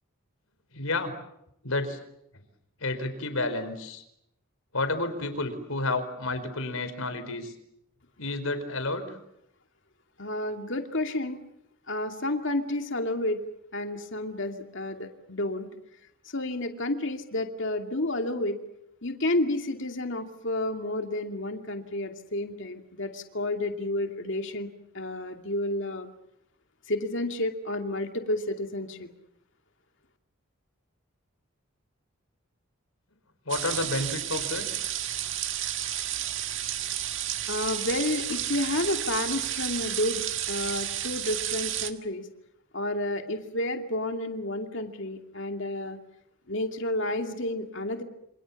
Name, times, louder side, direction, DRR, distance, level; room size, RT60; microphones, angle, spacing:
voice 1, 0.7-1.1 1.6-2.0 2.8-4.0 4.7-7.5 8.2-9.1 33.5-34.6, left 2 dB, 75° left, 10 dB, 4.8 m, -30 dB
voice 2, 10.2-11.4 11.9-13.4 13.7-15.7 16.3-18.6 19.0-24.7 24.9-26.1 26.9-29.1 37.5-42.3 42.7-46.0 46.5-48.0, left 1 dB, 60° left, 5 dB, 2.6 m, -30 dB
sound 1, 33.5-41.9, right 11 dB, 60° right, 1.9 m, -31 dB
28.0 x 27.5 x 7.2 m, 0.78 s
head